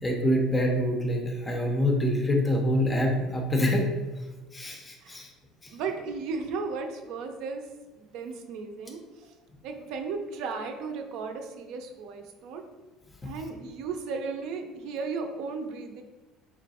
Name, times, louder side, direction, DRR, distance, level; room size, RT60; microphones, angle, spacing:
voice 1, 0.0-3.9 4.5-5.3 5.6-5.7, equal, 10° left, 1 dB, 0.6 m, -26 dB
voice 2, 5.7-7.6 7.9-9.3 9.6-12.6 13.3-16.0, right 4 dB, 60° right, 5 dB, 0.6 m, -35 dB
3.8 x 3.1 x 4.2 m, 1.2 s
cardioid pair, 165°, 0 cm